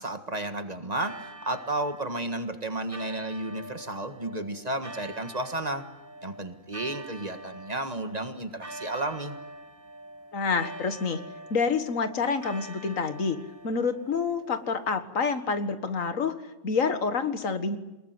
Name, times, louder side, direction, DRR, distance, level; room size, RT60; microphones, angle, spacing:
voice 1, 0.0-5.9 6.2-9.3, right 2 dB, 30° right, 8 dB, 1.7 m, -32 dB
sound 1, 1.0-14.9, right 2 dB, 15° right, 3.2 m, -45 dB
voice 2, 10.3-11.2 11.5-13.4 13.6-16.3 16.6-17.8, left 5 dB, 85° left, 10 dB, 2.0 m, -27 dB
24.0 x 21.0 x 9.5 m, 1.0 s
omnidirectional pair, 1.3 m